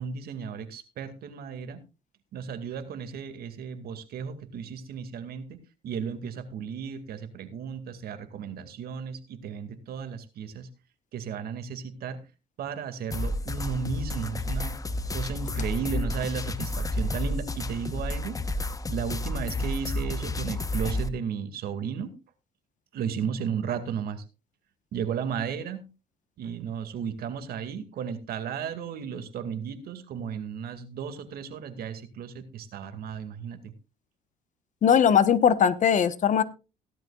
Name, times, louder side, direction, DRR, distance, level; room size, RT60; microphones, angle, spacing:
voice 1, 0.0-1.8 2.3-10.7 11.1-12.2 12.6-14.8 15.1-18.4 18.9-22.1 22.9-24.2 24.9-25.9 26.4-33.7, right 7 dB, 65° right, 9 dB, 2.2 m, -34 dB
sound 1, 13.1-21.1, left 1 dB, 20° left, 1.0 m, -31 dB
voice 2, 34.8-36.4, left 8 dB, 45° left, 13 dB, 1.2 m, -20 dB
17.0 x 12.0 x 2.4 m, 0.29 s
cardioid pair, 110°, 17 cm